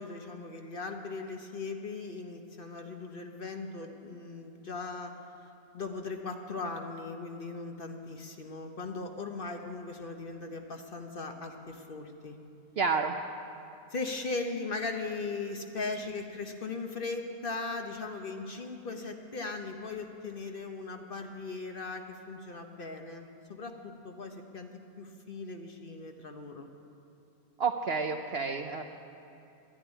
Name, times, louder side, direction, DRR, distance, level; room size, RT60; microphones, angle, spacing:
voice 1, 0.0-5.1 5.7-12.4 13.9-24.7 25.0-26.7, left 3 dB, 45° left, 4 dB, 1.0 m, -38 dB
voice 2, 12.8-13.1 27.6-28.8, right 5 dB, 55° right, 5 dB, 0.7 m, -29 dB
12.5 x 10.5 x 9.9 m, 2.7 s
omnidirectional pair, 1.5 m